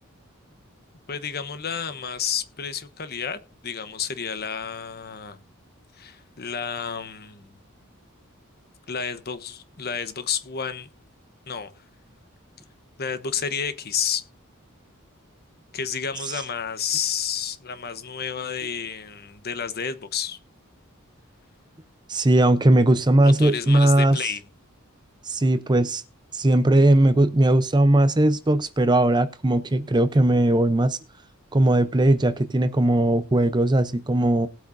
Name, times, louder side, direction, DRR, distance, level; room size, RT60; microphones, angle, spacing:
voice 1, 1.1-5.4 6.0-7.5 8.9-10.9 11.5-11.7 13.0-14.2 15.7-20.4 23.4-24.4, left 7 dB, 50° left, 1.0 m, -30 dB
voice 2, 22.1-24.2 25.3-26.0 26.3-31.0 31.5-34.5, right 1 dB, 20° right, 0.6 m, -19 dB
19.5 x 8.4 x 2.6 m
head